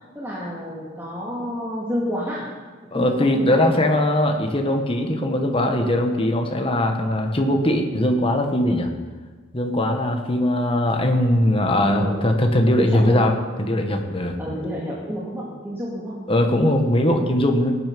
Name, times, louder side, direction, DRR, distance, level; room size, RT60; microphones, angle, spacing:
voice 1, 0.0-2.5 2.9-3.8 11.7-12.2 12.7-13.2 14.4-16.2, equal, 10° right, -6 dB, 2.1 m, -29 dB
voice 2, 2.9-8.9 9.5-13.3 13.6-14.3 16.3-17.8, left 1 dB, 30° left, 4 dB, 1.6 m, -20 dB
18.5 x 9.6 x 5.3 m, 1.4 s
head